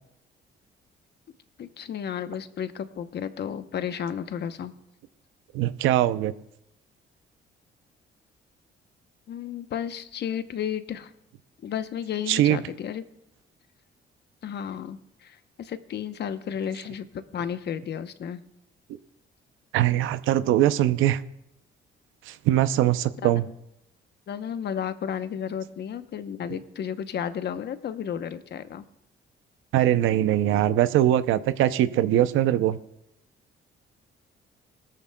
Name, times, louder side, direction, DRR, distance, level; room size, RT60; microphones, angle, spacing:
voice 1, 1.6-4.7 9.3-11.1 11.6-13.1 14.4-17.1 17.3-18.4 23.2-23.5 24.3-28.9, left 8 dB, 60° left, 11 dB, 0.8 m, -33 dB
voice 2, 5.5-6.3 12.3-12.6 19.7-21.2 22.3-23.4 29.7-32.8, right 12 dB, 90° right, 13 dB, 0.6 m, -22 dB
18.5 x 13.5 x 2.2 m, 0.80 s
cardioid pair, 90°, 20 cm